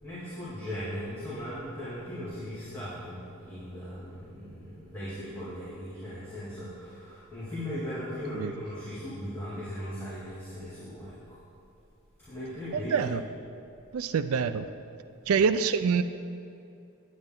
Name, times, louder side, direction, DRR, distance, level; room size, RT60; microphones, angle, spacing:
voice 1, 0.0-11.4 12.2-13.2 15.3-15.4, equal, 10° left, -13 dB, 2.3 m, -38 dB
voice 2, 12.7-13.2 13.9-14.7 15.3-16.0, right 6 dB, 85° right, 11 dB, 0.4 m, -26 dB
9.8 x 9.4 x 3.7 m, 2.5 s
head